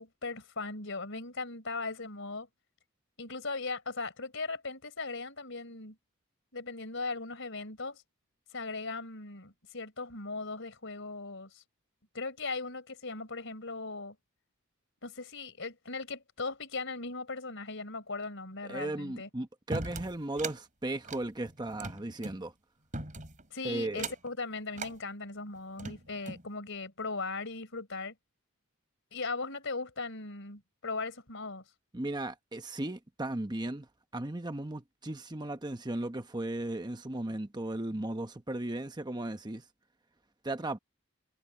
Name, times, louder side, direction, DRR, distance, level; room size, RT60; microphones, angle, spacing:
voice 1, 0.0-2.5 3.2-6.0 6.5-8.0 8.5-11.6 12.1-14.2 15.0-19.3 23.5-28.1 29.1-31.6, left 3 dB, 60° left, 4.6 m, -38 dB
voice 2, 18.6-22.5 23.6-24.1 31.9-33.9 34.1-39.6 40.4-40.8, right 1 dB, 20° right, 1.0 m, -36 dB
sound 1, 19.7-20.6 21.0-22.4 22.9-23.4 23.9-24.3 24.7-25.0 25.6-26.5, right 3 dB, 35° right, 5.5 m, -39 dB
head